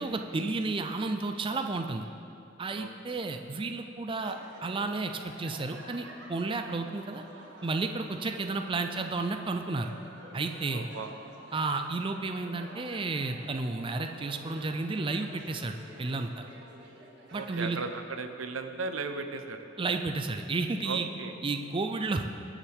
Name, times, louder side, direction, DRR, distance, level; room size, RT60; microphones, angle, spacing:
voice 1, 0.0-2.0 2.6-7.2 7.6-9.9 10.3-10.9 11.5-16.4 17.3-17.8 19.8-21.1 21.4-22.4, right 3 dB, 25° right, 6 dB, 0.4 m, -32 dB
voice 2, 2.7-3.2 10.7-11.1 17.3-19.7 20.8-21.3, right 4 dB, 90° right, 6 dB, 0.9 m, -37 dB
sound 1, 4.1-17.9, equal, 60° right, 2.0 m, -50 dB
21.0 x 7.4 x 3.6 m, 2.7 s
head